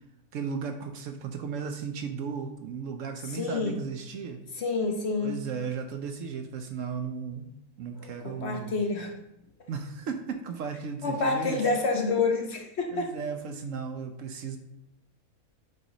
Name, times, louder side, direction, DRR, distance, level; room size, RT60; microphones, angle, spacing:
voice 1, 0.3-4.4 5.2-7.5 7.8-8.8 9.7-11.7 12.9-14.6, right 6 dB, 70° right, 6 dB, 0.9 m, -35 dB
voice 2, 3.3-3.8 4.5-5.4 8.0-9.1 11.0-13.1, left 3 dB, 55° left, 3 dB, 0.9 m, -28 dB
7.8 x 2.8 x 5.0 m, 0.83 s
omnidirectional pair, 1.6 m